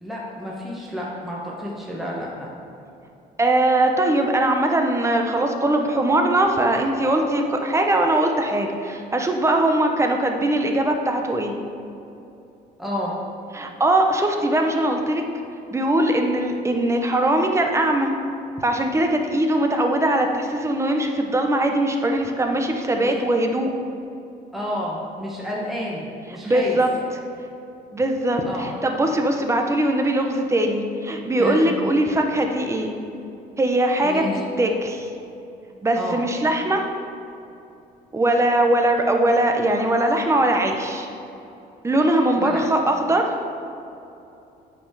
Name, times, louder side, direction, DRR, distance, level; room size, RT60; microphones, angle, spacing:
voice 1, 0.0-2.5 12.8-13.2 23.0-23.1 24.5-26.8 28.4-28.7 31.4-31.7 34.0-34.4 35.9-36.2 42.3-42.6, equal, ahead, -5 dB, 1.5 m, -30 dB
voice 2, 3.4-11.5 13.5-15.2 15.7-18.1 18.6-23.7 26.4-26.9 27.9-32.9 33.6-34.2 34.6-35.1 35.8-36.8 38.1-41.1 41.8-43.3, right 1 dB, 15° right, 3 dB, 0.9 m, -21 dB
8.6 x 5.5 x 4.9 m, 2.7 s
cardioid pair, 110°, 17 cm